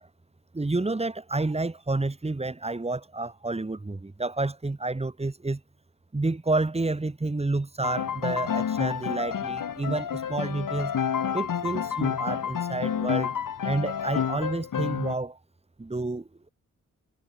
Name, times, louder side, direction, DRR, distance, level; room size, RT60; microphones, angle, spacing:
voice 1, 0.5-5.6 6.1-10.9 11.3-13.3 13.6-15.4 15.8-16.5, right 2 dB, 20° right, 1.7 m, -29 dB
Piano, 7.8-15.1, left 8 dB, 80° left, 4.3 m, -29 dB
cardioid pair, 75°, 32 cm